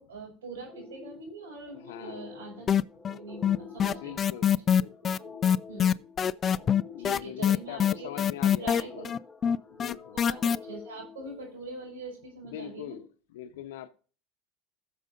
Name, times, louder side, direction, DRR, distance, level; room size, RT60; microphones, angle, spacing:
voice 1, 0.0-2.7 3.1-4.5 5.7-6.0 7.0-9.2 10.1-13.0, right 3 dB, 90° right, 4.9 m, -43 dB
sound 1, 0.7-12.0, left 5 dB, 15° left, 1.2 m, -48 dB
voice 2, 1.8-2.3 3.9-5.6 6.5-9.1 9.7-10.2 12.5-13.9, left 11 dB, 80° left, 0.8 m, -43 dB
sound 2, 2.7-3.2 3.4-10.6, left 8 dB, 35° left, 0.3 m, -24 dB
15.5 x 6.6 x 2.6 m
hypercardioid pair, 90°, 0 cm